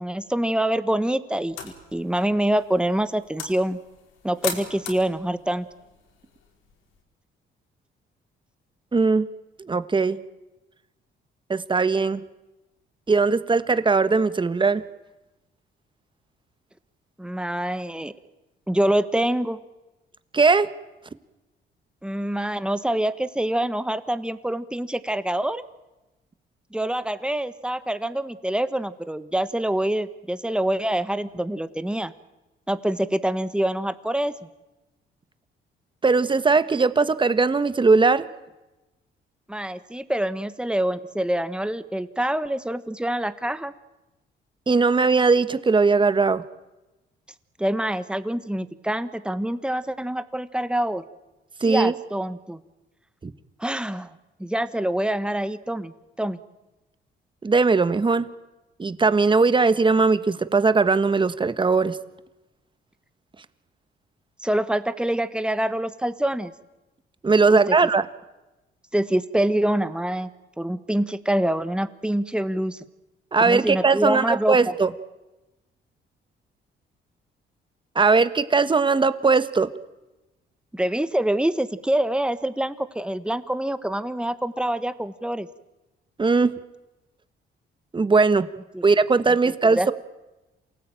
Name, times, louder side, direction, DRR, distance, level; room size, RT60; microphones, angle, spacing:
voice 1, 0.0-3.8 4.2-5.6 17.2-18.1 18.7-19.6 22.0-25.6 26.7-32.1 32.7-34.3 39.5-43.7 47.6-51.0 51.7-52.6 53.6-54.1 54.4-56.4 64.4-66.5 67.5-67.8 68.9-70.3 70.6-72.8 73.4-74.7 80.7-85.5 88.7-88.8 89.6-89.9, right 1 dB, 5° right, 12 dB, 1.5 m, -25 dB
sound 1, 1.4-7.0, left 7 dB, 85° left, 4.6 m, -39 dB
voice 2, 8.9-9.3 9.6-10.2 11.5-12.2 13.1-14.8 20.3-20.7 36.0-38.2 44.7-46.4 51.6-51.9 53.2-53.3 57.4-58.3 58.8-62.0 67.2-68.1 73.3-74.9 77.9-79.7 86.2-86.5 87.9-88.5 88.8-89.9, right 4 dB, 25° right, 12 dB, 1.4 m, -19 dB
28.0 x 18.5 x 9.1 m, 1.0 s
cardioid pair, 90°, 20 cm